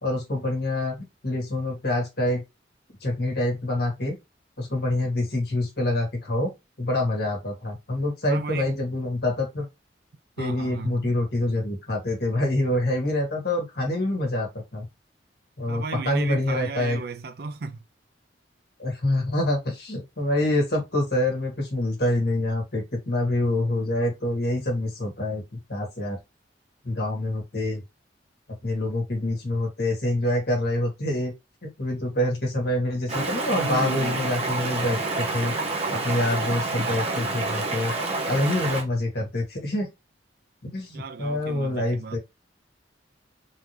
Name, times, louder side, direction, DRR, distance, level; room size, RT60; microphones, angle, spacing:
voice 1, 0.0-0.9 1.2-2.4 3.0-4.2 4.6-6.5 6.8-9.7 10.4-14.8 15.6-17.0 18.8-25.4 25.7-26.2 26.8-27.8 28.6-31.3 31.6-35.5 35.9-37.9 38.3-39.9 40.6-42.2, left 1 dB, 60° left, 1.7 m, -26 dB
voice 2, 8.3-8.7 10.4-11.2 15.7-17.8 40.9-42.2, right 4 dB, 60° right, 0.5 m, -34 dB
Stream, 33.1-38.8, right 3 dB, 35° right, 0.8 m, -28 dB
3.8 x 2.8 x 3.1 m
head